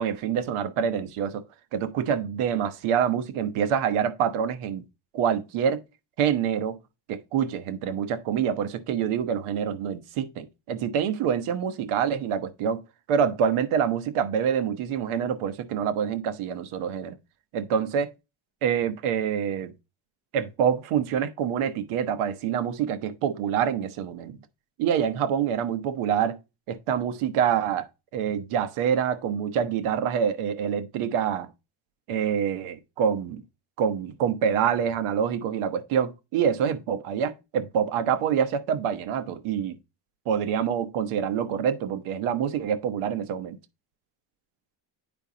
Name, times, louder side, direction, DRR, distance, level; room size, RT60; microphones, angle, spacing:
voice 1, 0.0-1.4 1.7-4.8 5.1-5.8 6.2-6.8 7.1-12.8 13.1-17.2 17.5-18.1 18.6-19.7 20.3-24.4 24.8-26.4 26.7-27.9 28.1-31.5 32.1-33.4 33.8-39.8 40.3-43.6, right 8 dB, 85° right, 1.1 m, -26 dB
9.1 x 5.0 x 2.8 m
cardioid pair, 115°, 49 cm